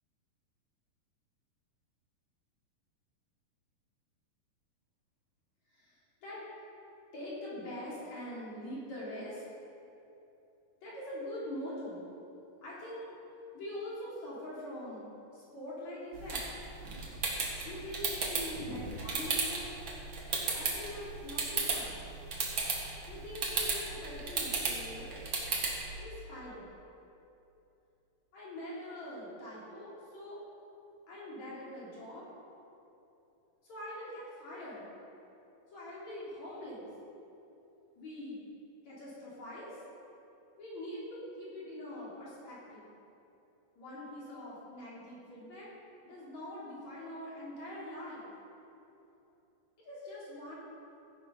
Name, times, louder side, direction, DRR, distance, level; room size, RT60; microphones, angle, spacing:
voice 1, 5.7-6.4 7.1-9.4 10.8-12.0 12.6-13.1 13.5-16.4 17.6-19.7 20.5-22.0 23.1-25.2 26.0-26.7 28.3-30.4 31.1-32.3 33.6-34.9 35.7-36.9 38.0-38.4 38.8-39.8 40.6-42.8 43.8-45.7 46.0-48.3 49.8-50.6, left 1 dB, 50° left, -7 dB, 4.9 m, -43 dB
sound 1, 16.1-25.9, right 3 dB, 45° right, 1.8 m, -35 dB
15.5 x 10.0 x 5.5 m, 2.8 s
omnidirectional pair, 4.2 m